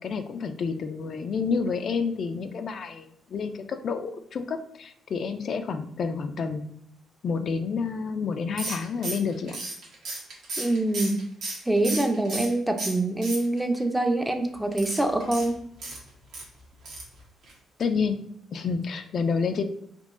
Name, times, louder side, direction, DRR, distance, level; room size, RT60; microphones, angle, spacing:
voice 1, 0.0-6.7 7.2-9.6 17.8-18.2 18.5-19.6, left 5 dB, 55° left, 7 dB, 0.3 m, -29 dB
sound 1, 8.6-12.5 12.8-13.8 14.7-16.5 16.8-17.2 17.4-17.5 17.8-17.9, right 2 dB, 75° right, 1.1 m, -34 dB
voice 2, 10.6-11.2 11.7-15.6, right 2 dB, 5° right, 6 dB, 0.4 m, -25 dB
3.7 x 2.7 x 2.5 m, 0.69 s
cardioid pair, 90°, 0 cm